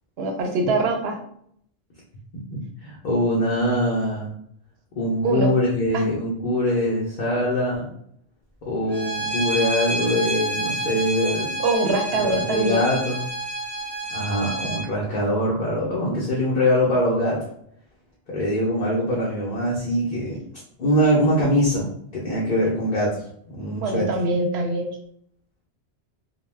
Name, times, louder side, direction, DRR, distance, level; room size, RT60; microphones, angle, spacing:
voice 1, 0.2-1.2 5.2-5.5 5.9-6.0 11.6-12.9 23.8-24.9, right 2 dB, 75° right, 3 dB, 0.8 m, -23 dB
voice 2, 2.5-4.3 4.9-7.9 8.6-11.5 12.1-13.3 14.1-17.4 18.3-20.4 20.8-24.1, equal, 50° left, -6 dB, 0.8 m, -23 dB
Bowed string instrument, 8.9-14.8, right 2 dB, 25° right, 1.1 m, -29 dB
2.2 x 2.2 x 3.2 m, 0.66 s
omnidirectional pair, 1.1 m